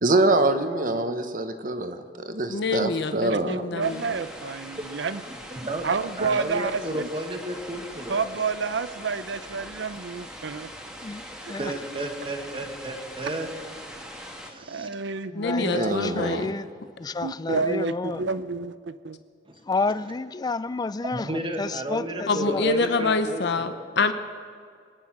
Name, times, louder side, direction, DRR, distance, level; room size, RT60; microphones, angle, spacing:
voice 1, 0.0-3.5 15.6-16.5, right 2 dB, 45° right, 1.1 m, -25 dB
voice 2, 2.5-4.0 15.3-16.5 22.3-24.1, left 3 dB, 65° left, 0.8 m, -26 dB
voice 3, 3.3-5.2 5.8-7.1 8.1-10.7 11.4-11.5 14.7-15.7 17.2-19.2, right 4 dB, 65° right, 0.6 m, -29 dB
sound 1, 3.8-14.5, equal, 5° right, 1.6 m, -41 dB
voice 4, 5.5-5.8 6.2-8.2 11.6-13.5 14.4-14.9 21.1-23.9, right 1 dB, 30° right, 1.5 m, -32 dB
voice 5, 11.0-11.7 15.3-16.7 17.0-18.2 19.7-21.3 21.6-22.7, left 3 dB, 20° left, 0.3 m, -30 dB
24.0 x 9.8 x 6.0 m
head